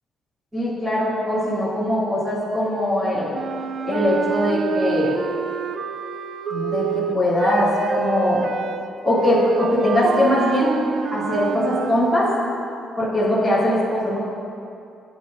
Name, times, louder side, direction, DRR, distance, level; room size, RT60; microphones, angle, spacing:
voice 1, 0.5-3.3 3.8-5.1 6.5-8.4 9.0-10.8 11.1-12.3 13.0-14.2, left 1 dB, 5° right, -10 dB, 2.6 m, -21 dB
sound 1, 3.3-12.0, right 7 dB, 45° right, 0.4 m, -28 dB
17.5 x 9.9 x 2.6 m, 2.5 s
cardioid pair, 170°, 0 cm